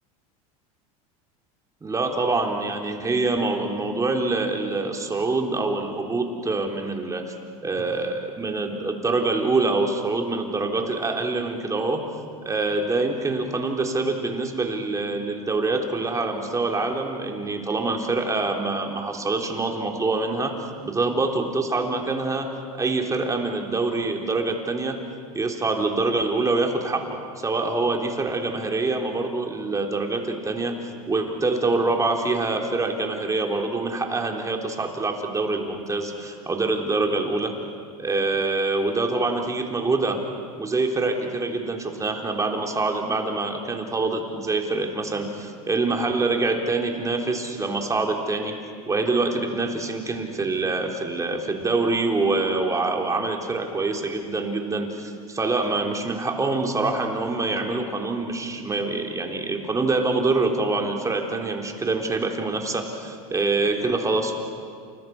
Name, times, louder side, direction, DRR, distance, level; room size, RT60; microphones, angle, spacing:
voice 1, 1.8-7.3 7.6-12.0 12.5-20.6 20.8-22.5 22.8-25.0 25.3-30.7 31.1-37.5 38.0-40.2 40.5-48.6 48.9-64.4, right 3 dB, 15° right, 2 dB, 3.7 m, -25 dB
30.0 x 28.5 x 6.1 m, 2.2 s
supercardioid pair, 105°, 19 cm